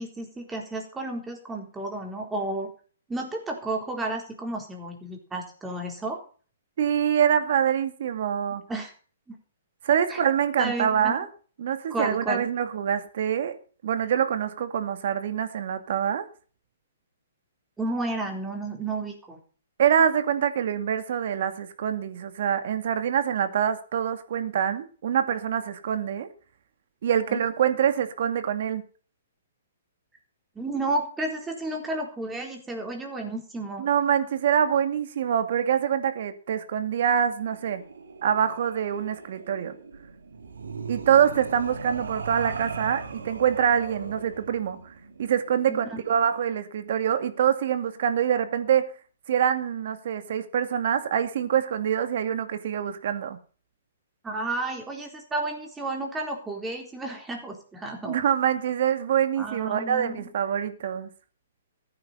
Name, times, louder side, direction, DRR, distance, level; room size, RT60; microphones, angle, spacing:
voice 1, 0.0-2.7 3.1-6.2 8.7-8.9 9.3-9.4 10.1-10.2 10.6-11.2 11.9-12.5 17.8-19.4 27.3-27.4 30.6-33.9 45.7-46.0 54.2-58.2 59.4-60.2, right 2 dB, 10° right, 3.9 m, -32 dB
voice 2, 6.8-8.6 9.8-11.3 11.6-13.6 13.8-16.3 19.8-26.3 27.0-28.8 33.8-37.8 38.2-39.7 40.9-44.9 45.2-48.9 49.3-53.4 58.0-61.1, right 8 dB, 60° right, 2.3 m, -25 dB
sound 1, 37.4-46.3, right 4 dB, 85° right, 2.9 m, -39 dB
15.0 x 9.5 x 5.6 m
hypercardioid pair, 140°, 0 cm